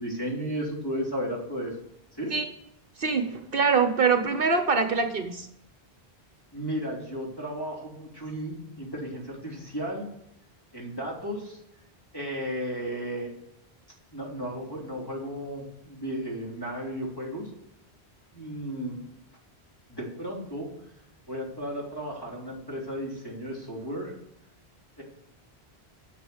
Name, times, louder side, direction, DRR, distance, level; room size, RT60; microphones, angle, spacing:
voice 1, 0.0-1.8 2.2-2.3 6.5-10.1 10.7-11.6 12.1-13.3 14.1-17.5 18.3-19.1 19.9-20.7 21.3-24.1 25.0-25.1, equal, 20° left, -3 dB, 3.4 m, -34 dB
voice 2, 3.0-5.5, right 5 dB, 60° right, 7 dB, 1.1 m, -24 dB
9.8 x 6.9 x 7.9 m, 0.79 s
omnidirectional pair, 1.1 m